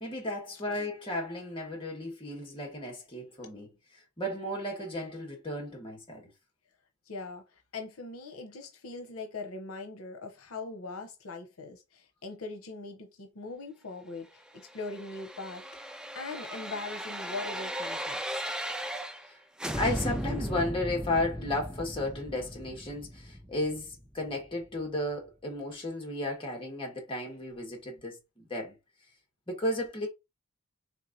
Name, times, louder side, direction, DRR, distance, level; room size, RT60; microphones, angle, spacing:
voice 1, 0.0-3.7 4.2-6.3 19.7-28.8 29.5-30.1, left 1 dB, 25° left, 1.6 m, -34 dB
voice 2, 7.1-18.5, left 3 dB, 75° left, 0.8 m, -41 dB
sound 1, 14.6-19.3 19.6-24.5 24.8-24.9, equal, 5° right, 0.3 m, -37 dB
4.5 x 3.4 x 2.7 m
head